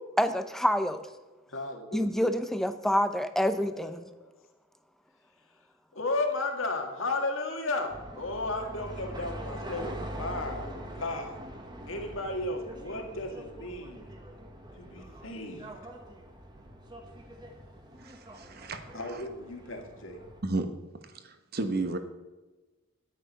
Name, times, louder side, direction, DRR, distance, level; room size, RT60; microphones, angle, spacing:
voice 1, 0.2-1.0 1.9-4.0, equal, ahead, 10 dB, 0.5 m, -27 dB
voice 2, 1.5-2.2 3.5-4.0 6.0-11.3 11.9-14.1 14.8-15.7 18.9-20.2, left 2 dB, 70° left, 3 dB, 1.8 m, -34 dB
sound 1, 7.9-20.4, right 1 dB, 20° right, 1.3 m, -43 dB
voice 3, 18.0-19.0 20.4-20.7 21.1-22.0, right 2 dB, 50° right, 8 dB, 1.1 m, -33 dB
11.0 x 9.0 x 5.4 m, 1.2 s
head